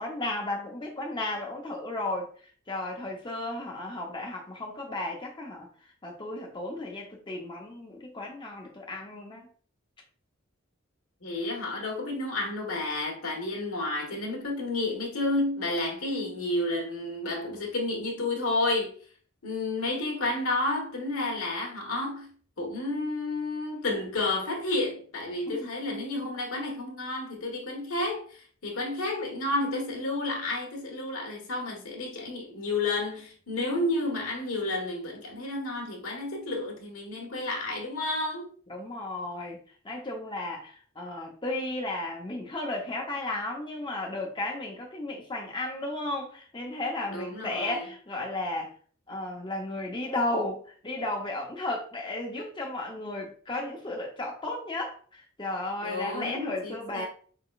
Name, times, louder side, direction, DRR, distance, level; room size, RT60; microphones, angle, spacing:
voice 1, 0.0-2.3 2.7-9.5 25.5-25.7 38.7-39.6 39.8-48.7 49.1-57.1, left 2 dB, 20° left, 0.7 m, -34 dB
voice 2, 11.2-19.0 19.4-22.3 22.6-38.5 47.1-47.9 55.8-57.1, left 2 dB, 80° left, 1.4 m, -31 dB
5.0 x 3.8 x 2.4 m
head